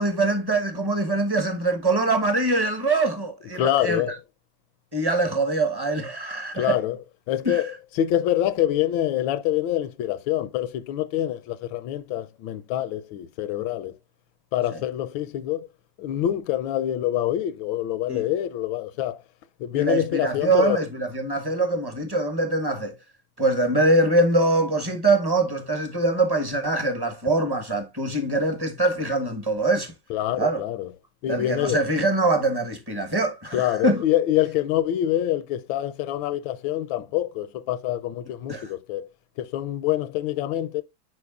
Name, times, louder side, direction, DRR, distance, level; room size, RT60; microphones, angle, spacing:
voice 1, 0.0-4.1 4.9-6.8 7.4-7.6 14.7-14.8 18.1-18.2 19.7-22.9 23.4-29.9 30.4-30.6 31.3-34.0 38.5-38.7, right 2 dB, 15° right, 0.9 m, -23 dB
voice 2, 3.6-4.2 6.5-7.0 7.3-13.9 14.5-15.7 16.0-19.2 19.6-20.8 30.1-30.9 31.2-31.8 33.5-39.1 39.4-40.8, left 12 dB, 80° left, 1.4 m, -26 dB
9.4 x 4.6 x 2.4 m
omnidirectional pair, 2.1 m